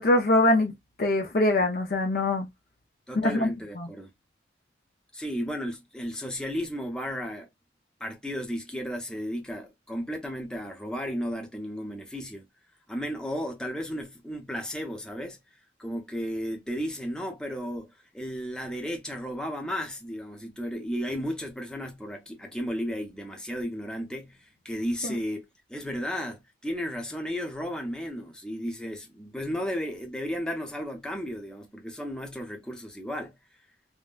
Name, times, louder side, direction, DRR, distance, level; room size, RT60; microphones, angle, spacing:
voice 1, 0.0-2.5 3.2-3.5 3.8-3.9, left 1 dB, 55° left, 0.5 m, -23 dB
voice 2, 3.1-4.1 5.1-7.5 8.0-12.5 12.9-15.4 15.8-17.9 18.1-33.3, equal, 5° left, 0.7 m, -34 dB
3.6 x 2.2 x 2.4 m
head